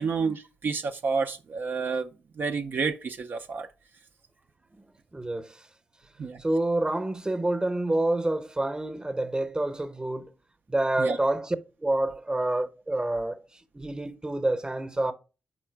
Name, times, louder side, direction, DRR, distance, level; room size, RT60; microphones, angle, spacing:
voice 1, 0.0-2.1 2.4-3.7 6.2-6.4 11.0-11.2, right 5 dB, 60° right, 0.4 m, -29 dB
voice 2, 5.1-5.6 6.4-10.3 10.7-15.1, right 1 dB, 20° right, 0.8 m, -28 dB
4.9 x 4.3 x 4.4 m
supercardioid pair, 50°, 4 cm